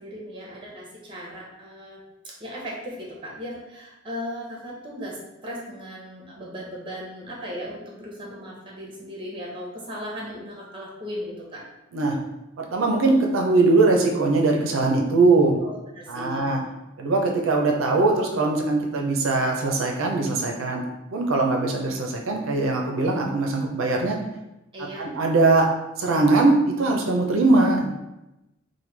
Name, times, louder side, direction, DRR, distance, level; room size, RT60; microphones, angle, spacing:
voice 1, 0.0-2.0 2.4-5.2 5.4-11.6 15.6-16.5 24.7-25.1, equal, 25° right, -4 dB, 0.8 m, -37 dB
voice 2, 12.6-15.6 16.1-16.6 17.0-20.8 21.1-24.2 25.0-25.7 26.0-27.9, right 3 dB, 70° right, 1 dB, 0.5 m, -21 dB
3.1 x 2.2 x 3.2 m, 0.94 s
head